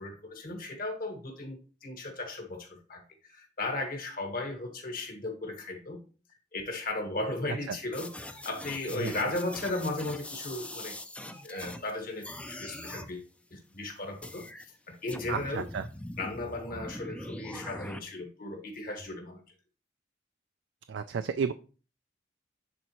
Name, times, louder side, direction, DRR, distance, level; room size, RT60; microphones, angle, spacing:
voice 1, 0.0-1.6 1.8-3.0 3.3-6.0 6.5-11.0 11.4-14.4 14.9-15.7 16.2-19.4, left 2 dB, 55° left, 4 dB, 1.7 m, -36 dB
sound 1, 7.9-11.9 12.2-13.1 14.2-14.6 15.1-18.0, left 1 dB, 5° left, 0.4 m, -42 dB
voice 2, 15.3-15.8 20.9-21.5, right 6 dB, 80° right, 9 dB, 0.4 m, -32 dB
10.5 x 3.9 x 3.0 m, 0.36 s
head